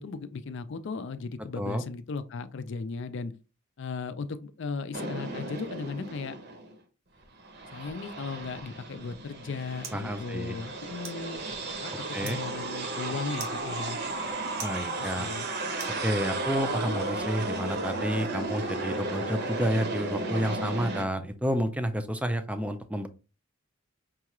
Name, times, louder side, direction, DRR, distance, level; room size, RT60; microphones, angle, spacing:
voice 1, 0.0-3.3 3.8-6.4 7.7-11.4 11.8-14.0 15.0-15.5, left 4 dB, 60° left, 0.4 m, -36 dB
sound 1, 4.9-6.7 7.2-21.0, right 2 dB, 55° right, 0.8 m, -34 dB
sound 2, 9.0-16.6, right 6 dB, 90° right, 1.2 m, -49 dB
voice 2, 9.9-10.6 12.1-12.4 14.6-15.3 16.0-23.1, equal, 5° right, 0.4 m, -30 dB
5.5 x 2.4 x 3.0 m
head